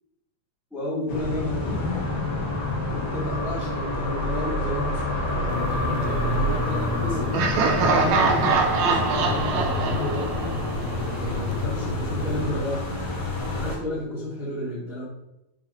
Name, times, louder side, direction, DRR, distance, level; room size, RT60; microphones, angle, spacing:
voice 1, 0.7-1.8 2.8-7.3 7.8-10.2 11.1-13.0 13.6-15.0, left 1 dB, ahead, -8 dB, 0.5 m, -31 dB
sound 1, 1.1-13.8, left 1 dB, 65° left, 1.0 m, -28 dB
sound 2, 5.5-12.5, left 2 dB, 90° left, 1.7 m, -32 dB
Laughter, 7.3-11.2, right 4 dB, 90° right, 2.8 m, -23 dB
9.8 x 3.8 x 2.7 m, 0.93 s
omnidirectional pair, 4.2 m